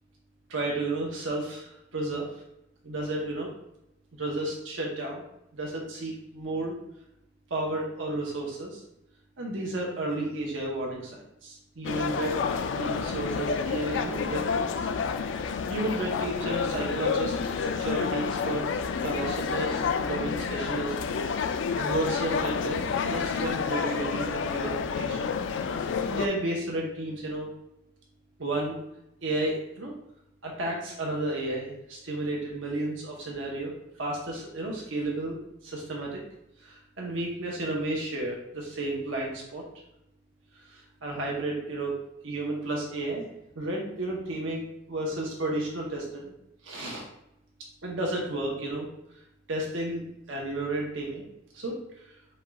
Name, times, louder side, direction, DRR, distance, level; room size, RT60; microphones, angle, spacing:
voice 1, 0.5-2.4 2.8-3.5 4.2-5.2 5.5-6.7 7.5-8.8 9.4-12.4 12.8-14.9 15.3-18.6 19.0-20.9 21.8-25.3 25.8-27.5 28.4-28.8 29.2-29.9 30.4-33.7 34.0-36.2 36.6-39.6 40.6-42.0 42.2-43.2 43.5-46.3 46.6-47.1 47.8-48.9 49.5-51.2 51.5-52.1, right 2 dB, 85° right, -2 dB, 1.0 m, -32 dB
sound 1, 11.8-26.3, left 6 dB, 70° left, 0.3 m, -29 dB
5.2 x 2.4 x 4.0 m, 0.84 s
head